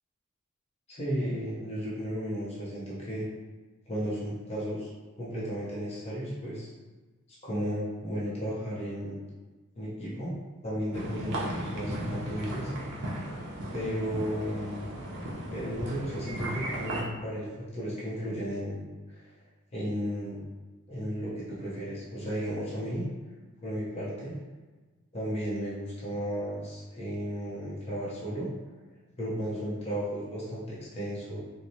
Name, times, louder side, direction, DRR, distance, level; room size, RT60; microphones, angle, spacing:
voice 1, 0.9-3.3 3.9-4.9 5.2-6.7 7.3-9.2 9.8-10.4 10.6-12.7 13.7-14.9 15.5-19.3 19.7-20.5 20.9-23.1 23.6-24.4 25.1-28.5 29.2-31.4, equal, 30° left, -7 dB, 0.6 m, -34 dB
sound 1, 10.9-17.0, right 1 dB, 60° right, 0.5 m, -36 dB
3.0 x 2.0 x 2.6 m, 1.3 s
head